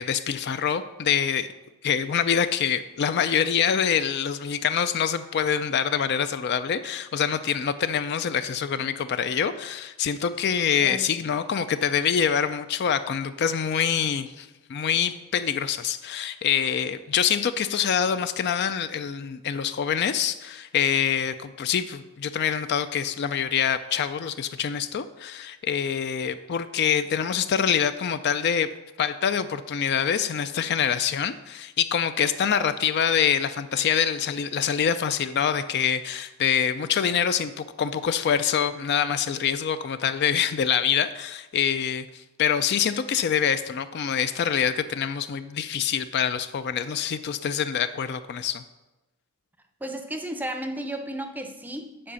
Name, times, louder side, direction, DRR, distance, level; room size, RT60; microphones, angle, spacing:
voice 1, 0.0-1.5 1.8-28.7 29.0-48.6, left 8 dB, 50° left, 11 dB, 0.3 m, -25 dB
voice 2, 10.8-11.2 32.5-32.6 49.8-52.1, right 1 dB, 10° right, 7 dB, 0.5 m, -34 dB
7.6 x 4.9 x 6.8 m, 1.1 s
head